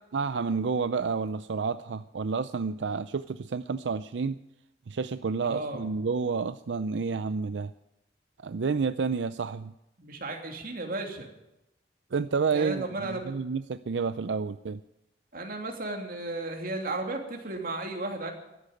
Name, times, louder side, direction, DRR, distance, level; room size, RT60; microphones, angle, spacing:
voice 1, 0.1-4.4 4.9-7.7 8.4-9.7 12.1-14.8, right 5 dB, 85° right, 12 dB, 0.5 m, -30 dB
voice 2, 5.4-5.9 10.0-11.3 12.5-13.3 15.3-18.3, right 2 dB, 55° right, 2 dB, 2.9 m, -34 dB
13.5 x 10.0 x 9.2 m, 0.89 s
head